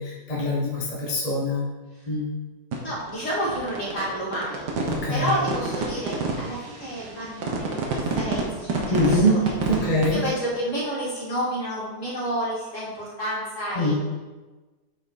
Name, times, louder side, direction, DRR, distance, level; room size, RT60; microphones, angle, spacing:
voice 1, 0.0-1.6 2.1-2.2 4.9-5.3 8.9-10.2 13.8-13.9, equal, 25° left, -3 dB, 1.0 m, -23 dB
sound 1, 2.7-10.1, right 3 dB, 80° right, 1.7 m, -28 dB
voice 2, 2.8-4.7 5.1-8.8 9.1-9.4 10.1-13.9, equal, 45° left, -8 dB, 3.0 m, -30 dB
7.8 x 5.7 x 4.1 m, 1.2 s
omnidirectional pair, 1.8 m